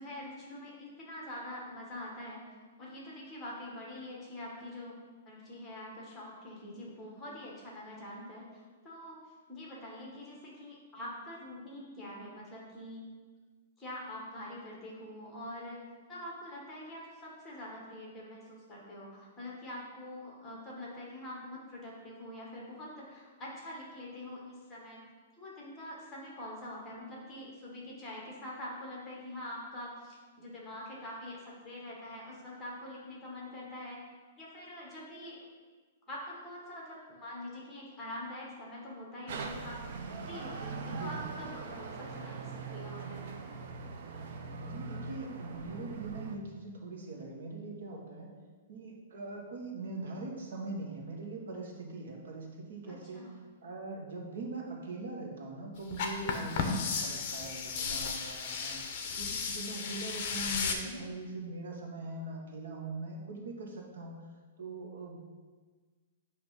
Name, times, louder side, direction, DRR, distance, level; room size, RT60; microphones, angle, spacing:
voice 1, 0.0-2.4 2.8-5.0 5.2-9.2 9.5-13.1 13.8-15.8 16.1-25.0 25.4-34.0 34.4-35.5 36.1-39.8 40.2-43.3 53.1-53.3 60.8-61.0, left 1 dB, 10° left, -4 dB, 1.2 m, -45 dB
sound 1, 39.3-46.4, right 4 dB, 45° right, 0.5 m, -41 dB
voice 2, 44.6-48.3 48.7-53.3 53.6-58.8 59.2-64.2 64.6-65.2, right 2 dB, 80° right, 0 dB, 1.3 m, -42 dB
sound 2, 55.9-60.7, left 5 dB, 35° left, 0.7 m, -34 dB
8.3 x 2.8 x 5.2 m, 1.4 s
hypercardioid pair, 170°, 0 cm